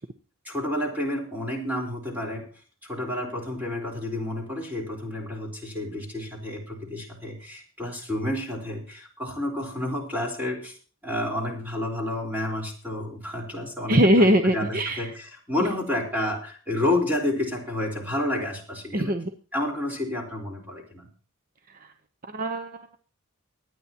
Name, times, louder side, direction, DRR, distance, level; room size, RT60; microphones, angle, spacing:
voice 1, 0.4-2.5 2.8-10.8 11.0-19.1 19.5-21.1, left 1 dB, 10° right, 0 dB, 4.1 m, -30 dB
voice 2, 13.9-15.1 18.9-19.3 21.8-21.9 22.3-23.0, equal, 40° right, 7 dB, 0.8 m, -21 dB
23.5 x 9.7 x 2.9 m, 0.38 s
head